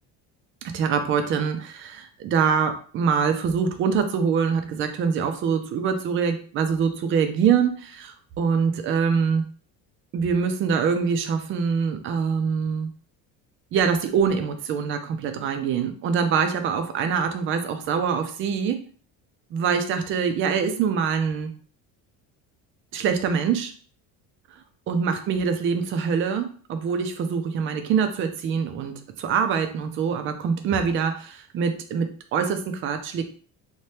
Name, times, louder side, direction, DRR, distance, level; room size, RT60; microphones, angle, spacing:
voice 1, 0.6-9.5 10.1-12.9 13.7-18.8 19.5-21.5 22.9-23.7 24.9-33.3, right 6 dB, 35° right, 7 dB, 0.4 m, -24 dB
2.8 x 2.2 x 3.2 m, 0.42 s
cardioid pair, 160°, 36 cm